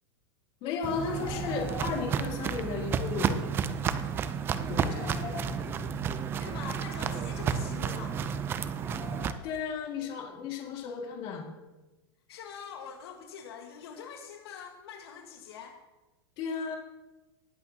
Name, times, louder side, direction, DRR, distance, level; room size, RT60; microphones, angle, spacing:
voice 1, 0.6-3.4 4.7-5.7 9.4-11.5 16.4-16.8, left 5 dB, 35° left, 1 dB, 1.9 m, -34 dB
Walk footsteps, 0.8-9.3, right 7 dB, 15° right, 0.4 m, -31 dB
sound 1, 1.1-2.4 4.7-6.1 8.8-9.9, left 6 dB, 20° left, 0.6 m, -44 dB
voice 2, 6.4-8.2 12.3-15.8, left 7 dB, 70° left, 3 dB, 1.4 m, -44 dB
19.0 x 8.3 x 2.7 m, 1.1 s
supercardioid pair, 155°, 14 cm